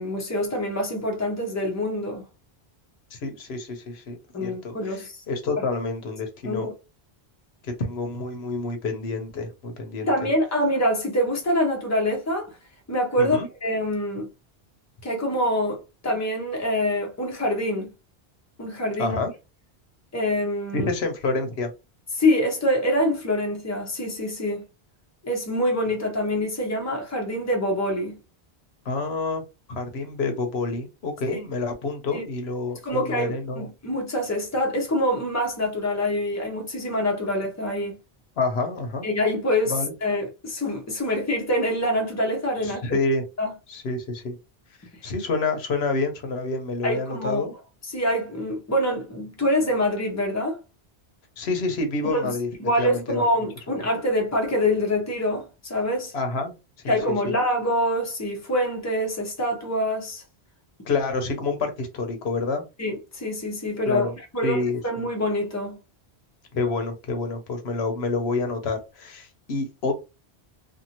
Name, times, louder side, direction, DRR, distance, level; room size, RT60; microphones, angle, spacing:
voice 1, 0.0-2.2 4.3-5.2 5.6-5.7 6.5-6.7 10.0-12.6 12.9-14.3 15.0-17.9 18.6-19.2 20.1-20.9 22.2-24.6 25.2-28.2 32.1-32.2 32.8-38.0 39.0-43.0 43.4-43.5 46.8-47.4 47.9-50.6 52.0-52.3 52.6-56.1 56.9-60.2 62.8-65.8, left 1 dB, 20° left, 0.7 m, -25 dB
voice 2, 3.1-6.7 7.6-10.1 13.2-13.5 19.0-19.3 20.7-21.7 28.8-29.4 29.7-33.7 38.4-39.0 39.7-39.9 42.6-43.2 43.7-44.4 45.0-47.5 51.4-52.5 52.8-53.2 56.1-56.5 56.8-57.0 57.2-57.3 60.8-62.6 63.9-64.1 64.4-64.8 66.5-69.9, left 3 dB, 80° left, 1.0 m, -28 dB
2.6 x 2.5 x 2.8 m
omnidirectional pair, 1.1 m